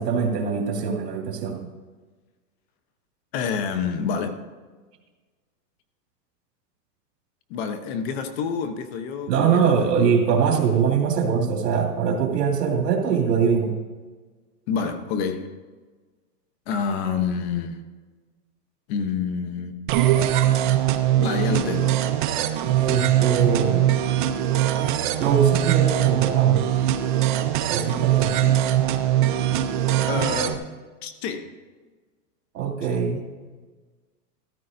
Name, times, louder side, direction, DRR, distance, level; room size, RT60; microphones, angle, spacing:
voice 1, 0.0-1.7 9.3-13.8 22.8-23.9 25.2-26.6 27.7-28.3 32.5-33.2, right 6 dB, 75° right, 2.5 m, -22 dB
voice 2, 3.3-4.4 7.5-10.0 14.7-15.5 16.7-17.8 18.9-19.7 21.2-22.0 28.4-28.6 30.0-30.6 31.0-31.5 32.9-33.0, left 6 dB, 40° left, 0.9 m, -28 dB
sound 1, 19.9-30.5, right 12 dB, 35° right, 0.5 m, -21 dB
14.0 x 14.0 x 2.6 m
supercardioid pair, 150°, 49 cm